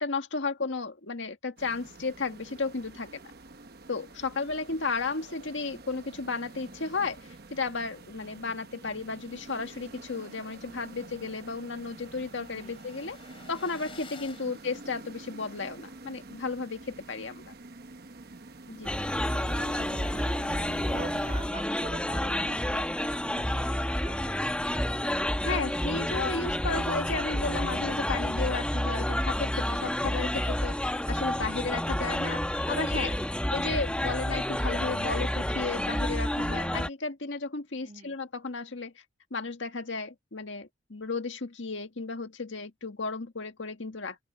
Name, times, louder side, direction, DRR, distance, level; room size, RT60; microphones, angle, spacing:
voice 1, 0.0-3.2 3.9-13.2 13.5-17.5 18.7-18.9 25.4-33.2 33.5-38.9 39.3-44.2, left 4 dB, 80° left, 1.7 m, -34 dB
sound 1, 1.6-21.5, right 2 dB, 55° right, 1.1 m, -47 dB
sound 2, 10.7-15.6, left 5 dB, 30° left, 3.5 m, -53 dB
voice 2, 12.4-12.8 14.3-14.6 20.4-24.8 26.5-26.8 37.7-38.2, right 3 dB, 40° right, 2.0 m, -46 dB
sound 3, 18.8-36.9, left 1 dB, 5° left, 1.2 m, -29 dB
open air
head